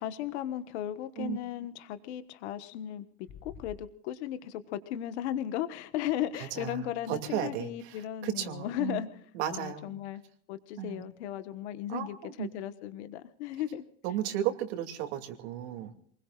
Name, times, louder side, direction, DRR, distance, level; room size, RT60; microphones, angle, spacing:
voice 1, 0.0-10.2 10.5-13.8, left 11 dB, 85° left, 10 dB, 1.4 m, -36 dB
sound 1, 3.2-3.8, left 7 dB, 35° left, 1.6 m, -47 dB
voice 2, 6.6-7.7 8.2-9.0 9.3-10.0 10.8-11.0 11.9-12.5 14.0-15.9, right 11 dB, 80° right, 4 dB, 2.7 m, -34 dB
28.5 x 21.0 x 2.5 m, 0.62 s
cardioid pair, 165°, 33 cm